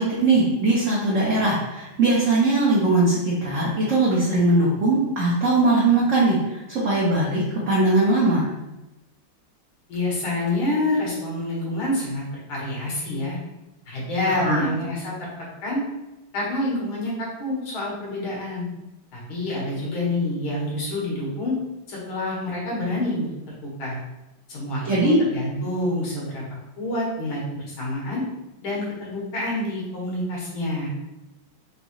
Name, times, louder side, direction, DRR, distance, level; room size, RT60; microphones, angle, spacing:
voice 1, 0.0-8.5 14.3-14.8 24.8-25.2, right 2 dB, 50° right, -6 dB, 1.0 m, -20 dB
voice 2, 9.9-12.2 12.5-13.4 13.9-15.3 15.6-15.8 16.3-18.7 19.1-21.5 21.9-23.3 23.6-24.0 24.5-26.4 26.8-28.2 28.6-30.9, left 1 dB, 90° left, -5 dB, 2.3 m, -27 dB
5.3 x 2.9 x 3.0 m, 0.97 s
omnidirectional pair, 2.2 m